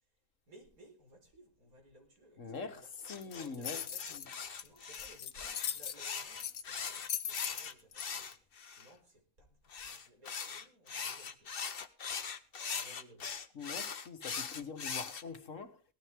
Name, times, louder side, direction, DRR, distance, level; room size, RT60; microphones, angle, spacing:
voice 1, 0.5-2.9 3.2-4.2 4.5-11.5 12.1-13.4, equal, 85° right, 4.9 m, -60 dB
voice 2, 2.4-4.3 13.5-15.8, left 5 dB, 60° left, 1.7 m, -44 dB
sound 1, 3.0-8.9 9.7-15.2, left 6 dB, 45° left, 1.1 m, -41 dB
sound 2, 3.2-8.0, left 9 dB, 80° left, 1.4 m, -40 dB
18.5 x 13.0 x 3.6 m
omnidirectional pair, 1.5 m